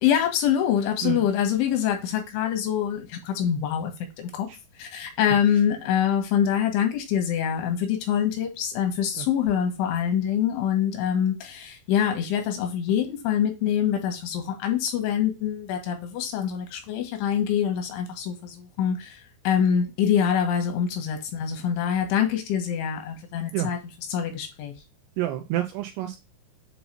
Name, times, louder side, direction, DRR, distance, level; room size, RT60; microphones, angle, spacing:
voice 1, 0.0-3.9 4.2-4.5 4.8-19.2 19.5-23.8 24.1-24.7, left 9 dB, 85° left, 3.6 m, -25 dB
voice 2, 25.2-26.2, right 14 dB, 80° right, 2.5 m, -28 dB
7.9 x 2.8 x 4.4 m
omnidirectional pair, 5.4 m